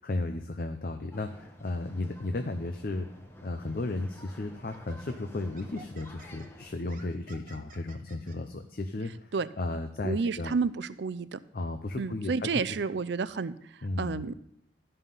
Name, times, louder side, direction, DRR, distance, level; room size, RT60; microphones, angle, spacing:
voice 1, 0.0-3.1 3.4-10.6 11.5-12.5 13.8-14.2, left 2 dB, 55° left, 7 dB, 0.6 m, -34 dB
sound 1, 1.1-6.8, equal, 15° left, 1.0 m, -51 dB
Laughter, 3.9-4.1 4.7-8.4, right 2 dB, 45° right, 1.0 m, -53 dB
voice 2, 10.0-11.4 12.0-13.5 14.0-14.3, right 4 dB, 70° right, 15 dB, 0.4 m, -30 dB
13.0 x 5.6 x 5.5 m, 0.70 s
head